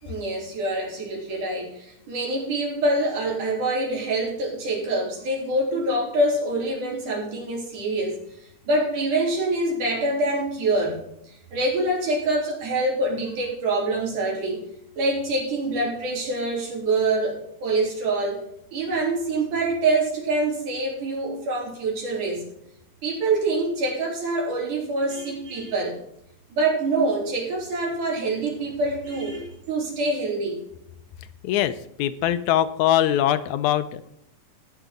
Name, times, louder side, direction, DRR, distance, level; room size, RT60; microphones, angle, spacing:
voice 1, 0.0-8.2 8.7-11.0 11.3-14.6 15.0-18.4 18.7-22.4 23.0-26.0 26.5-30.6, right 2 dB, 85° right, -2 dB, 5.3 m, -25 dB
voice 2, 31.4-34.1, left 11 dB, 80° left, 12 dB, 2.1 m, -22 dB
19.0 x 7.1 x 3.8 m, 0.77 s
omnidirectional pair, 3.5 m